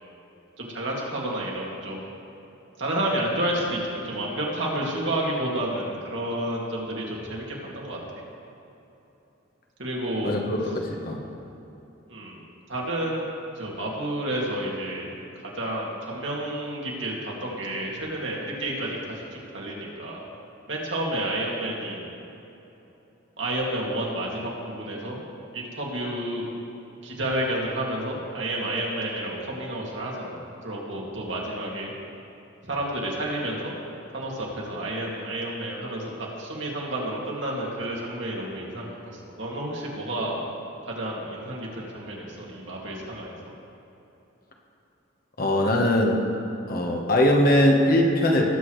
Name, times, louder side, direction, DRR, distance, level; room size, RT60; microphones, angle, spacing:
voice 1, 0.6-2.0 2.8-8.0 9.8-10.4 12.1-12.4 12.7-13.3 13.6-15.1 15.5-20.2 20.7-22.0 23.4-25.2 25.5-26.4 27.0-31.9 32.6-33.7 34.1-36.1 36.4-40.4 40.9-43.3, right 1 dB, 65° right, -3 dB, 2.3 m, -30 dB
voice 2, 10.2-11.2 45.4-46.2 46.7-48.5, left 1 dB, 45° left, 0 dB, 1.2 m, -21 dB
19.5 x 8.4 x 3.2 m, 2.9 s
head